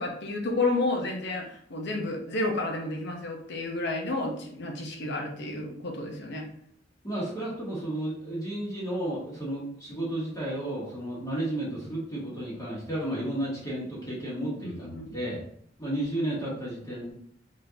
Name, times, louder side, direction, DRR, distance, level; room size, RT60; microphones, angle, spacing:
voice 1, 0.0-6.5 14.6-15.1, left 2 dB, 60° left, 1 dB, 0.8 m, -31 dB
voice 2, 7.0-15.4 15.8-17.1, right 1 dB, 20° left, -7 dB, 1.2 m, -32 dB
3.7 x 3.7 x 2.8 m, 0.66 s
head